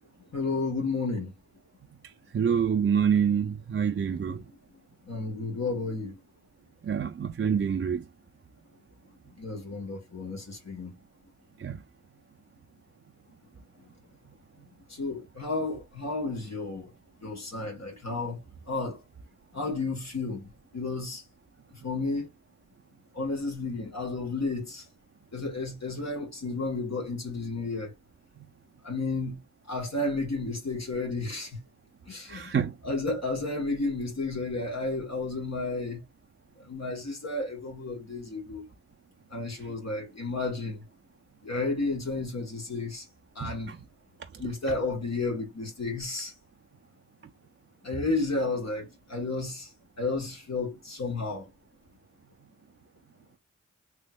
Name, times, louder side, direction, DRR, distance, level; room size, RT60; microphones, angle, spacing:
voice 1, 0.3-1.3 4.1-4.4 5.0-6.2 9.4-10.9 14.9-16.9 17.2-18.4 18.7-19.0 19.5-21.2 21.7-22.3 23.1-24.8 25.3-27.9 28.8-29.4 29.7-31.6 32.1-36.0 36.7-38.7 39.3-40.8 41.4-43.0 43.3-43.7 44.4-46.3 47.8-49.7 50.0-51.5, left 3 dB, 60° left, 1.4 m, -32 dB
voice 2, 2.3-4.4 6.8-8.0 11.6-11.8 32.3-32.7 43.4-43.8, right 7 dB, 40° right, 0.4 m, -26 dB
3.4 x 3.0 x 2.2 m
wide cardioid pair, 65°, 31 cm